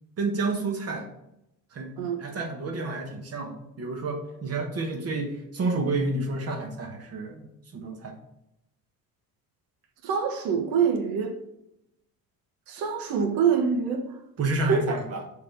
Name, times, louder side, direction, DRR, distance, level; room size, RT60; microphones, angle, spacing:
voice 1, 0.2-1.1 1.7-1.9 2.2-7.5 7.7-8.1 14.4-15.2, right 3 dB, 45° right, 1.1 m, -30 dB
voice 2, 10.0-11.3 12.7-14.0 14.7-15.0, right 6 dB, 85° right, 1.2 m, -25 dB
6.7 x 3.4 x 5.3 m
cardioid pair, 135°, 34 cm